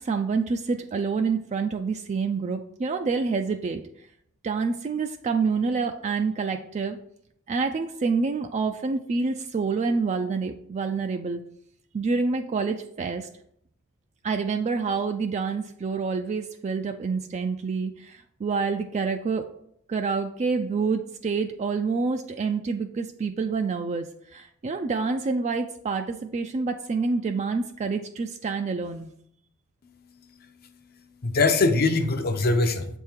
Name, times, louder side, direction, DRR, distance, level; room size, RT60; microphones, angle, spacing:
voice 1, 0.0-3.8 4.4-7.0 7.5-11.4 11.9-13.3 14.2-19.5 19.9-29.1, right 4 dB, 30° right, 6 dB, 0.3 m, -27 dB
voice 2, 29.8-30.7 31.2-32.9, left 3 dB, 45° left, 6 dB, 0.7 m, -24 dB
7.3 x 3.6 x 4.4 m, 0.71 s
head